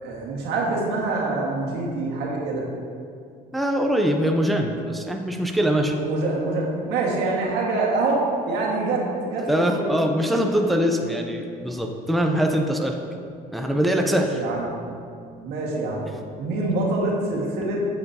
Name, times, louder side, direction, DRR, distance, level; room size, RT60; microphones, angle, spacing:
voice 1, 0.0-2.6 5.8-8.2 8.5-9.9 13.8-14.6 15.4-16.1 16.4-17.8, right 3 dB, 85° right, -3 dB, 1.7 m, -25 dB
voice 2, 3.5-5.9 9.5-13.0 13.5-14.4, equal, ahead, 2 dB, 0.5 m, -23 dB
9.2 x 7.0 x 2.8 m, 2.4 s
cardioid pair, 110°, 17 cm